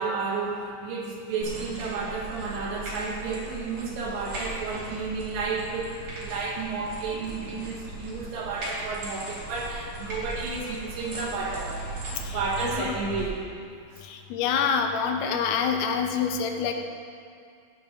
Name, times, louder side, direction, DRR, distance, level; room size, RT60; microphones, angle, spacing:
voice 1, 0.0-11.8 12.3-13.4 13.9-14.0, right 4 dB, 70° right, -1 dB, 2.7 m, -32 dB
sound 1, 1.4-13.2, right 2 dB, 45° right, 3.2 m, -38 dB
voice 2, 12.6-12.9 14.0-16.7, left 6 dB, 85° left, 4 dB, 2.9 m, -26 dB
17.5 x 11.0 x 2.9 m, 2.3 s
omnidirectional pair, 4.7 m